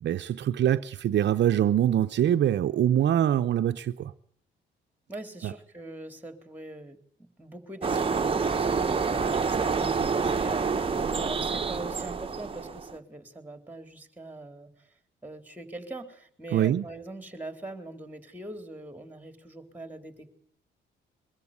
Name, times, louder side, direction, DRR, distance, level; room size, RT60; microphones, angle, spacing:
voice 1, 0.0-4.1 5.4-5.5 16.5-16.8, right 11 dB, 65° right, 0.8 m, -24 dB
voice 2, 5.1-14.9 15.2-20.3, right 2 dB, 10° right, 3.9 m, -42 dB
sound 1, 7.8-13.0, right 5 dB, 25° right, 1.3 m, -27 dB
23.0 x 13.5 x 9.8 m
cardioid pair, 90°, 20 cm